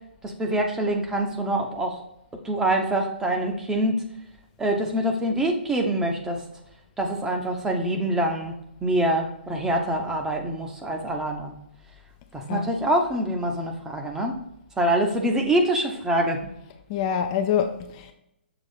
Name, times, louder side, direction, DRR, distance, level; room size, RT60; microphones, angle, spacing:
voice 1, 0.2-2.0 2.4-4.0 4.6-6.4 7.0-8.5 8.8-11.6 12.3-14.4 14.8-16.5, right 1 dB, 10° right, 0.9 m, -25 dB
voice 2, 12.4-12.8 16.9-18.1, left 8 dB, 35° left, 0.5 m, -26 dB
6.9 x 3.5 x 5.4 m
figure-of-eight pair, 125°, 6 cm